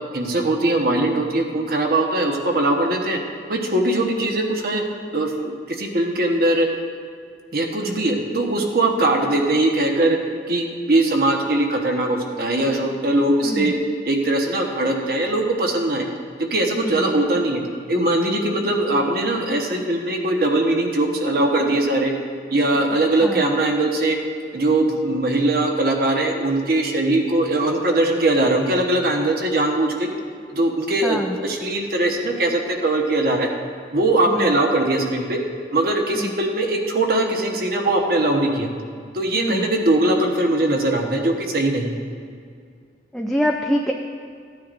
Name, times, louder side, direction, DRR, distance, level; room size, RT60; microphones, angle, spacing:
voice 1, 0.1-3.2 3.5-4.8 5.1-6.7 7.5-10.2 10.5-13.7 14.0-16.0 16.4-17.6 17.9-22.1 22.5-24.2 24.5-30.1 30.5-33.5 33.9-35.4 35.7-38.7 39.1-42.0, right 2 dB, 55° right, 2 dB, 1.2 m, -21 dB
voice 2, 39.4-39.7 43.1-43.9, equal, ahead, 0 dB, 0.4 m, -24 dB
15.0 x 9.4 x 2.6 m, 2.2 s
head